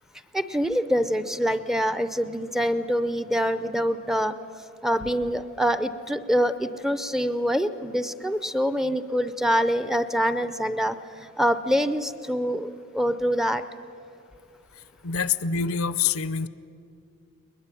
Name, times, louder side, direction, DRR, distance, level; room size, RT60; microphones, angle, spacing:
voice 1, 0.3-4.3 4.8-11.0 11.4-13.6, equal, ahead, 11 dB, 0.6 m, -25 dB
voice 2, 15.0-16.5, left 6 dB, 70° left, 16 dB, 0.7 m, -25 dB
21.5 x 20.5 x 9.1 m, 2.5 s
head